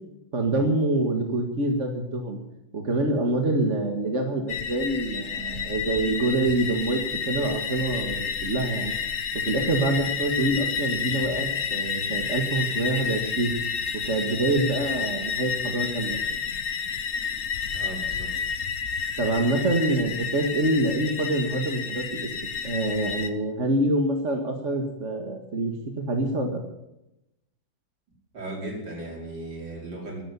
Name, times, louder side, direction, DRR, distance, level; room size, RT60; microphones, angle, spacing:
voice 1, 0.3-2.4 2.7-8.9 9.3-13.5 13.9-16.4 19.2-22.3 22.6-26.6, right 2 dB, 40° right, 3 dB, 2.0 m, -26 dB
sound 1, 4.5-23.3, left 6 dB, 50° left, 1.3 m, -30 dB
voice 2, 17.7-18.3 28.3-30.2, right 2 dB, 70° right, -2 dB, 5.6 m, -36 dB
13.0 x 12.0 x 8.3 m, 0.88 s
omnidirectional pair, 2.1 m